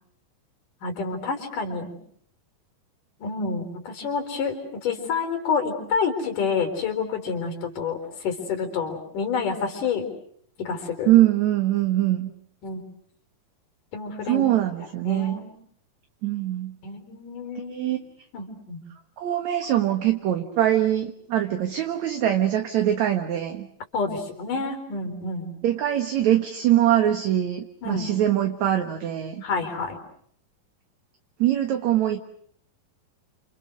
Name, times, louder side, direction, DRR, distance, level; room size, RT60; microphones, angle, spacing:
voice 1, 0.8-2.0 3.2-10.0 10.6-11.1 12.6-12.8 13.9-14.5 15.0-15.5 16.8-18.0 18.3-18.8 23.9-25.5 27.8-28.1 29.4-30.0, left 5 dB, 60° left, 6 dB, 5.5 m, -28 dB
voice 2, 11.1-12.3 14.3-15.4 16.2-16.8 17.7-18.0 19.2-23.7 25.6-29.4 31.4-32.2, right 12 dB, 60° right, 5 dB, 2.5 m, -23 dB
30.0 x 27.5 x 6.3 m, 0.65 s
omnidirectional pair, 4.2 m